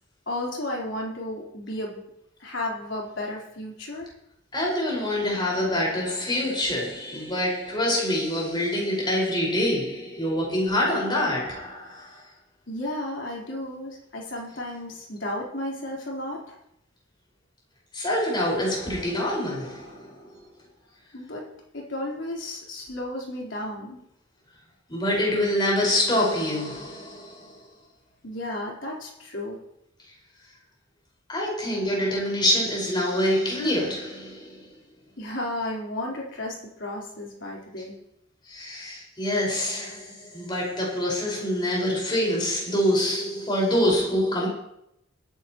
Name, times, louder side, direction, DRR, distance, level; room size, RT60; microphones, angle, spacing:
voice 1, 0.3-2.0 2.4-4.1 12.7-16.6 21.1-24.0 28.2-29.6 35.2-37.9, left 1 dB, 70° left, 4.0 m, -33 dB
voice 2, 4.5-12.2 17.9-20.4 24.9-27.6 31.3-34.7 38.5-44.5, left 1 dB, 25° left, 5.2 m, -26 dB
23.0 x 10.5 x 3.1 m
head